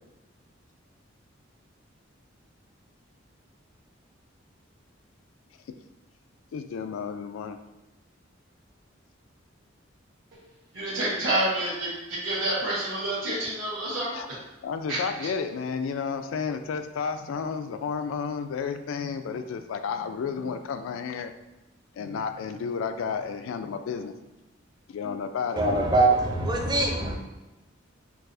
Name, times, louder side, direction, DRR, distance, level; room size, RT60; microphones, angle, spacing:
voice 1, 6.5-7.6 14.1-14.3 14.6-21.3 22.0-24.1 24.9-25.7, left 6 dB, 85° left, 9 dB, 0.3 m, -32 dB
voice 2, 10.7-14.4 14.9-15.3, right 1 dB, 75° right, -9 dB, 1.4 m, -28 dB
voice 3, 25.6-27.1, right 2 dB, 20° right, 0 dB, 0.4 m, -23 dB
4.5 x 2.0 x 2.6 m, 1.0 s
head